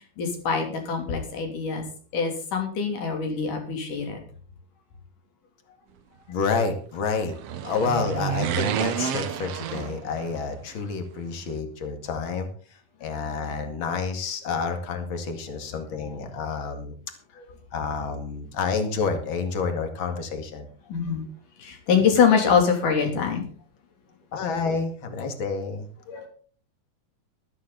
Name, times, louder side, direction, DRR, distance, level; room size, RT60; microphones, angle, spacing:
voice 1, 0.2-1.8 2.1-4.2 20.9-21.2 21.6-23.5 26.1-26.3, left 6 dB, 75° left, 3 dB, 4.6 m, -24 dB
voice 2, 6.3-7.3 7.6-12.5 13.0-16.9 17.7-20.7 24.3-25.9, left 5 dB, 40° left, 6 dB, 2.7 m, -29 dB
sound 1, 7.1-10.5 10.8-10.9, right 9 dB, 65° right, 1.6 m, -30 dB
14.0 x 13.5 x 4.0 m, 0.43 s
omnidirectional pair, 3.8 m